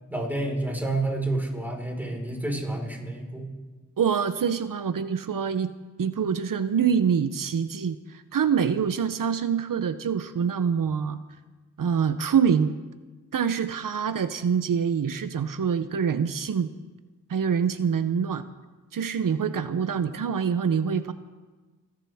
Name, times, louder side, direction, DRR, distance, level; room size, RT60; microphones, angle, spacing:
voice 1, 0.1-3.5, right 2 dB, 5° right, 0 dB, 4.3 m, -29 dB
voice 2, 4.0-5.7 6.0-11.2 11.8-12.8 13.3-16.7 17.3-18.5 18.9-21.1, right 7 dB, 85° right, 11 dB, 0.6 m, -25 dB
28.5 x 12.0 x 3.5 m, 1.3 s
wide cardioid pair, 50°, 32 cm